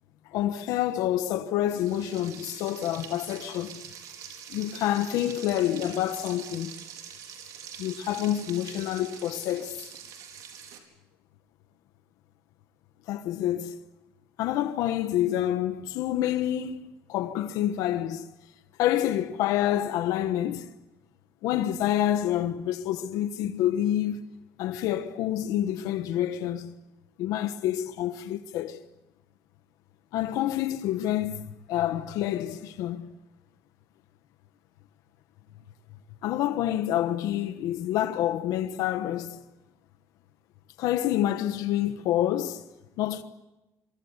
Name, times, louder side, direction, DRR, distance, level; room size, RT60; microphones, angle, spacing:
voice 1, 0.3-3.8 4.5-6.8 7.8-9.7 13.1-13.7 14.4-18.3 18.8-20.7 21.4-24.2 24.6-26.7 27.2-28.8 30.1-31.4 31.7-33.1 36.2-39.4 40.8-42.6 43.0-43.2, left 12 dB, 90° left, 1.2 m, -28 dB
Frying (food), 1.7-10.8, right 8 dB, 80° right, 4.7 m, -44 dB
25.5 x 24.5 x 8.1 m
cardioid pair, 110°, 6 cm